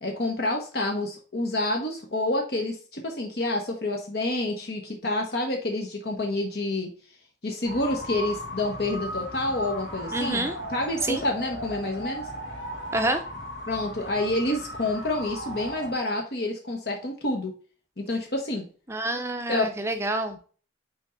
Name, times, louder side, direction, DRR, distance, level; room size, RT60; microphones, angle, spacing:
voice 1, 0.0-6.9 7.4-12.3 13.7-17.5 18.0-18.6 19.5-19.7, left 2 dB, 55° left, 1 dB, 1.1 m, -28 dB
sound 1, 7.6-15.9, equal, 90° left, 2.6 m, -37 dB
voice 2, 10.1-10.6 11.0-11.2 12.9-13.2 18.9-20.4, right 1 dB, 15° right, 6 dB, 0.6 m, -27 dB
6.3 x 4.3 x 3.9 m, 0.40 s
head